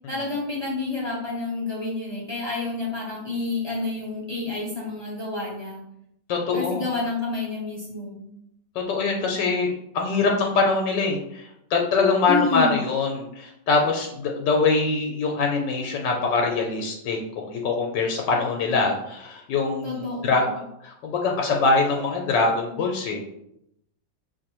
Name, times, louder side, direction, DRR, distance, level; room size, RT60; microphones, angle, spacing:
voice 1, 0.1-5.8 6.5-8.3 12.3-12.8 19.8-20.6, left 3 dB, 40° left, -6 dB, 0.4 m, -29 dB
voice 2, 6.3-6.8 8.9-20.5 20.8-23.3, left 3 dB, 80° left, 1 dB, 1.3 m, -23 dB
6.2 x 2.6 x 2.9 m, 0.79 s
omnidirectional pair, 2.0 m